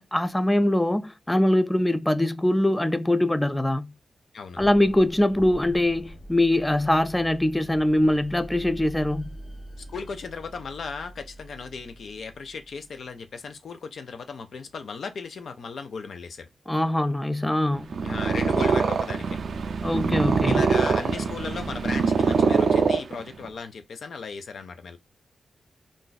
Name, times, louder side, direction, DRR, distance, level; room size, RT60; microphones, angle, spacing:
voice 1, 0.0-3.9 4.6-9.3 16.7-18.0 19.8-20.6, left 1 dB, 10° left, 0.3 m, -23 dB
voice 2, 4.3-4.7 9.8-16.5 18.0-19.4 20.4-25.0, left 5 dB, 75° left, 0.5 m, -36 dB
sound 1, 4.6-13.4, equal, 50° left, 1.1 m, -44 dB
Purr, 17.8-23.5, right 5 dB, 70° right, 0.4 m, -23 dB
2.6 x 2.3 x 3.8 m
cardioid pair, 80°, 0 cm